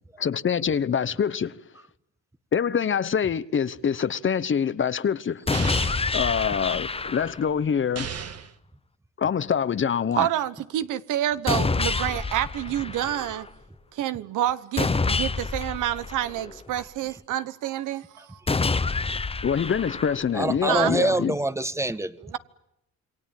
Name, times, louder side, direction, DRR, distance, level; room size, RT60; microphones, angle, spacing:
voice 1, 0.2-1.6 2.5-5.4 6.1-8.1 9.2-10.3 19.4-21.4, left 7 dB, 40° left, 1.0 m, -25 dB
sound 1, 5.5-7.5 11.5-13.5 14.8-16.8 18.5-20.5, left 4 dB, 20° left, 1.0 m, -27 dB
sound 2, 5.5-6.1 8.0-8.6, right 7 dB, 55° right, 1.7 m, -34 dB
voice 2, 10.2-13.5 13.9-18.4 20.7-20.9 22.3-22.4, right 12 dB, 85° right, 1.2 m, -28 dB
voice 3, 20.3-22.4, right 2 dB, 10° right, 1.5 m, -26 dB
27.5 x 22.5 x 9.0 m
cardioid pair, 90°, 30 cm